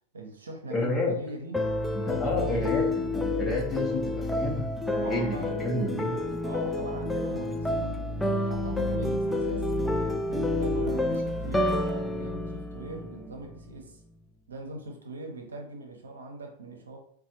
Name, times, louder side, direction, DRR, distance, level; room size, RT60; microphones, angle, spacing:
voice 1, 0.1-1.6 2.0-2.8 4.9-5.8 6.4-9.7 10.3-14.0 14.5-17.0, right 2 dB, 85° right, 2 dB, 0.7 m, -41 dB
voice 2, 0.7-1.2 1.9-4.7 5.0-6.2, left 1 dB, 20° left, -3 dB, 0.8 m, -30 dB
sound 1, 1.5-13.7, left 1 dB, 5° left, 0.4 m, -29 dB
4.1 x 2.2 x 2.8 m, 0.64 s
hypercardioid pair, 95°, 0 cm